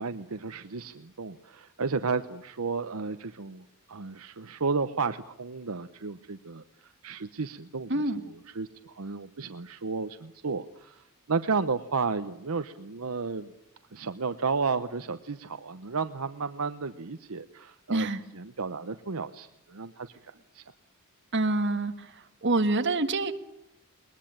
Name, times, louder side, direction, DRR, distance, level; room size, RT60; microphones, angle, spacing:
voice 1, 0.0-13.5 13.9-18.1 18.3-20.6, right 4 dB, 80° right, 10 dB, 0.9 m, -33 dB
voice 2, 7.9-8.2 17.9-18.2 21.3-22.1 22.4-23.3, right 2 dB, 55° right, 7 dB, 1.9 m, -26 dB
21.5 x 21.0 x 8.8 m, 0.80 s
head